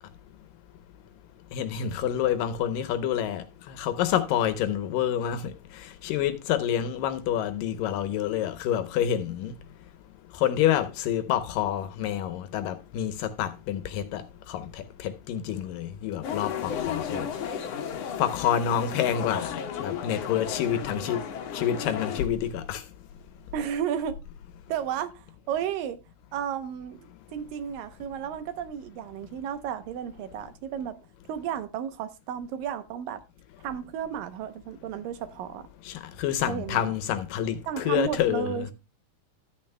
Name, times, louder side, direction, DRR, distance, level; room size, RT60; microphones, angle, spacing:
voice 1, 1.5-9.5 10.4-17.3 18.2-21.2 21.5-22.8 35.9-38.7, left 10 dB, 75° left, 2.3 m, -28 dB
sound 1, 16.2-22.3, left 7 dB, 60° left, 1.9 m, -34 dB
voice 2, 23.5-24.2 24.7-26.0 26.3-31.0 31.3-33.2 33.6-35.6 36.5-36.8 37.7-38.7, right 9 dB, 75° right, 2.4 m, -33 dB
13.5 x 9.1 x 2.2 m
omnidirectional pair, 4.2 m